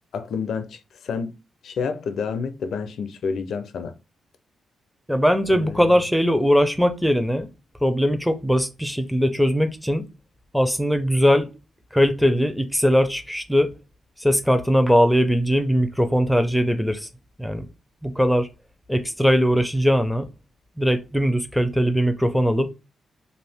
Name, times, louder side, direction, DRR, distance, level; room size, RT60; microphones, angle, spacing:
voice 1, 0.1-1.3 1.6-3.9 5.5-6.0, left 5 dB, 70° left, 0.4 m, -29 dB
voice 2, 5.1-7.5 7.8-10.0 10.5-11.5 11.9-13.7 14.2-17.1 17.4-17.7 18.0-18.5 18.9-20.3 20.8-22.7, equal, ahead, 0.5 m, -20 dB
2.6 x 2.5 x 3.4 m
cardioid pair, 85°, 0 cm